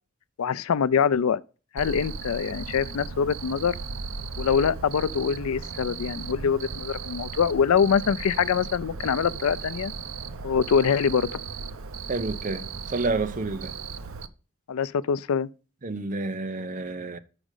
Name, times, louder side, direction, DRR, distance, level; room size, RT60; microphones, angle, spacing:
voice 1, 0.4-1.4 1.7-3.7 4.4-9.9 10.4-11.3 14.7-15.5, left 6 dB, 90° left, 0.4 m, -24 dB
Cricket, 1.8-14.3, right 5 dB, 75° right, 0.6 m, -36 dB
voice 2, 12.1-13.7 15.8-17.2, right 3 dB, 40° right, 0.6 m, -29 dB
6.2 x 5.0 x 6.5 m
head